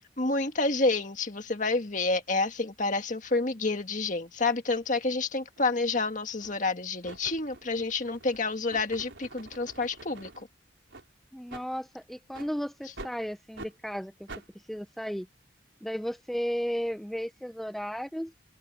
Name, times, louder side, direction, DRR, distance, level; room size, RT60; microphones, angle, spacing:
voice 1, 0.2-10.3, left 3 dB, 40° left, 1.8 m, -29 dB
sound 1, 5.6-5.7 6.4-6.7 7.0-10.4 10.9-11.1 11.5-11.7 12.3-12.5 13.0-13.2 13.6-13.7 14.3-14.5, right 2 dB, 75° right, 4.5 m, -46 dB
voice 2, 11.3-14.3 14.7-15.3 15.8-18.3, equal, ahead, 0.5 m, -34 dB
open air
head